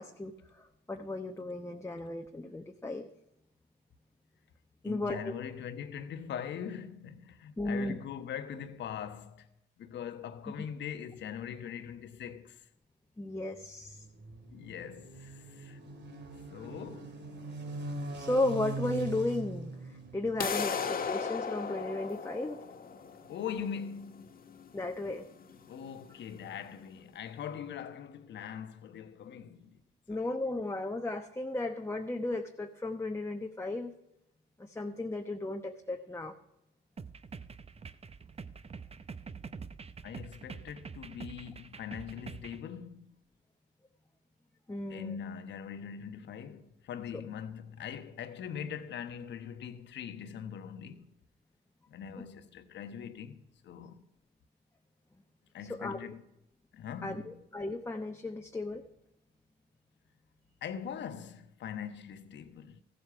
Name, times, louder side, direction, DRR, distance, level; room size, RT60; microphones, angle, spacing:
voice 1, 0.0-3.1 4.8-5.3 7.6-8.0 13.2-14.1 18.1-22.6 24.7-25.2 30.1-33.9 34.6-36.3 44.7-45.2 55.7-56.1 57.0-58.8, left 2 dB, 15° left, 1.0 m, -35 dB
voice 2, 4.8-9.5 9.8-12.7 14.5-15.8 16.5-17.2 23.3-24.4 25.7-29.8 30.1-30.2 40.0-43.2 44.9-51.1 51.9-54.0 55.5-56.2 56.7-57.3 60.6-62.8, left 8 dB, 70° left, 1.1 m, -42 dB
sound 1, 13.5-21.2, right 2 dB, 65° right, 2.3 m, -42 dB
sound 2, 20.4-26.4, left 6 dB, 50° left, 1.5 m, -37 dB
sound 3, 37.0-42.6, right 5 dB, 30° right, 0.7 m, -46 dB
14.5 x 7.8 x 6.0 m
cardioid pair, 70°, 19 cm